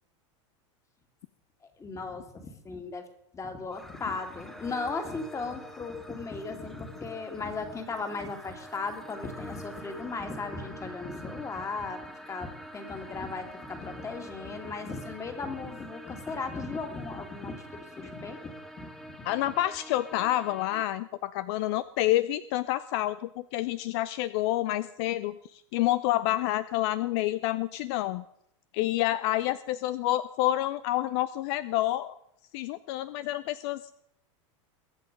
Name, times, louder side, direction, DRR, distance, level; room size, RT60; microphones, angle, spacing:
voice 1, 1.8-3.1 3.3-19.2, left 4 dB, 20° left, 7 dB, 2.4 m, -37 dB
sound 1, 3.7-20.8, equal, ahead, 1.3 m, -46 dB
voice 2, 19.2-28.2 28.7-32.2 32.5-33.9, left 15 dB, 55° left, 15 dB, 0.6 m, -28 dB
22.0 x 7.8 x 5.3 m, 0.77 s
supercardioid pair, 125°, 16 cm